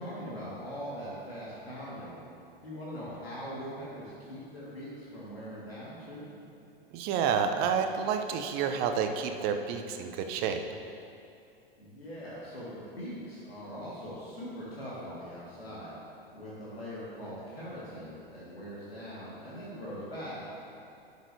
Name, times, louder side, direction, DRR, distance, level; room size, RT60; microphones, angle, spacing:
voice 1, 0.0-2.1 2.6-6.3 11.8-16.0 16.3-20.7, equal, 85° left, -8 dB, 1.9 m, -41 dB
voice 2, 6.9-10.6, right 7 dB, 35° right, 6 dB, 0.6 m, -29 dB
11.0 x 6.5 x 2.7 m, 2.6 s
figure-of-eight pair, 100°, 29 cm